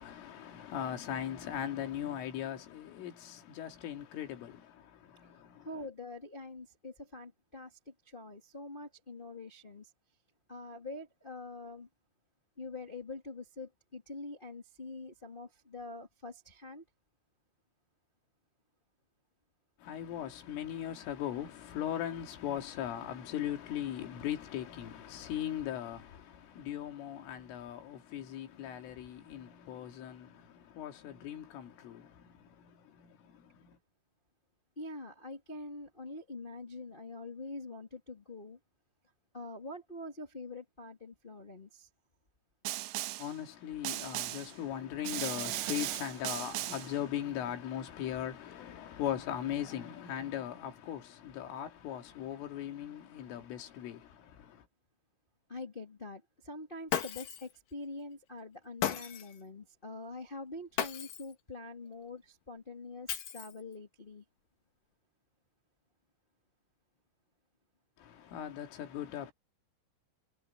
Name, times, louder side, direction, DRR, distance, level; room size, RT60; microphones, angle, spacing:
voice 1, 0.0-5.7 19.8-33.8 43.2-54.6 68.0-69.3, left 10 dB, 80° left, 4.9 m, -39 dB
voice 2, 5.6-9.9 10.5-11.9 12.6-16.8 34.7-38.6 39.3-41.9 55.5-64.2, left 2 dB, 40° left, 0.7 m, -45 dB
Snare drum, 42.7-43.4 43.9-44.6 45.1-47.0, right 17 dB, 75° right, 2.8 m, -37 dB
Shatter, 56.9-57.5 58.8-59.4 60.8-61.3 63.1-63.7, left 9 dB, 55° left, 2.6 m, -35 dB
omnidirectional pair, 5.7 m